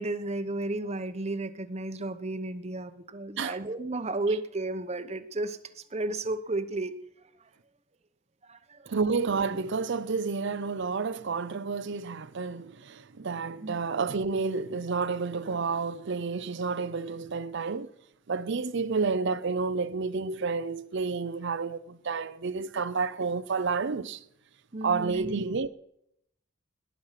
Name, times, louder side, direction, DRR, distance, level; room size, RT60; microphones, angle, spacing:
voice 1, 0.0-7.0 7.4-7.5 8.4-8.9 13.6-13.8 24.7-25.3, right 2 dB, 30° right, 0.9 m, -33 dB
voice 2, 8.9-17.9 18.3-24.2 24.8-25.7, right 4 dB, 55° right, 0.6 m, -30 dB
18.5 x 10.5 x 5.8 m
head